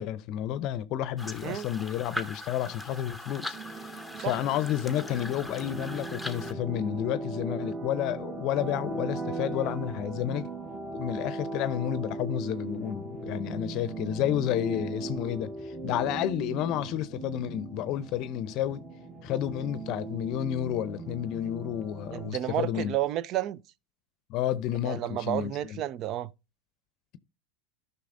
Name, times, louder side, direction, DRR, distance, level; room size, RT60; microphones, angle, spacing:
voice 1, 0.0-10.5 10.9-18.8 19.2-23.0 24.3-25.8, left 11 dB, 50° left, 0.6 m, -31 dB
sound 1, 1.2-6.5, left 1 dB, ahead, 0.9 m, -40 dB
sound 2, 3.5-22.3, right 3 dB, 25° right, 1.4 m, -38 dB
voice 2, 22.1-23.6 24.8-26.3, right 12 dB, 45° right, 0.4 m, -31 dB
13.0 x 5.7 x 2.6 m
hypercardioid pair, 100°, 0 cm